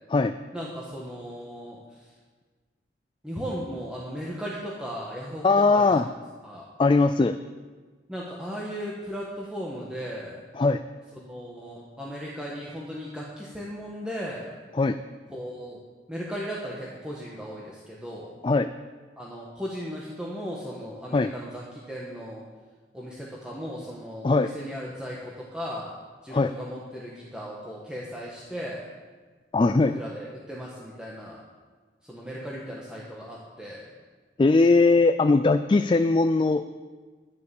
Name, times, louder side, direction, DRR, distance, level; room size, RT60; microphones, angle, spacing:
voice 1, 0.5-1.8 3.2-6.0 6.4-6.6 8.1-10.4 11.2-14.5 15.3-15.8 16.1-18.4 19.2-22.4 22.9-25.9 26.2-28.9 29.9-31.4 32.0-33.8, equal, 5° right, -5 dB, 1.5 m, -36 dB
voice 2, 5.4-6.1 6.8-7.4 10.5-10.8 14.7-15.0 18.4-18.7 21.1-21.3 24.2-24.5 26.3-26.5 29.5-30.0 34.4-36.7, left 3 dB, 25° left, 10 dB, 0.3 m, -20 dB
11.0 x 10.5 x 7.1 m, 1.4 s
head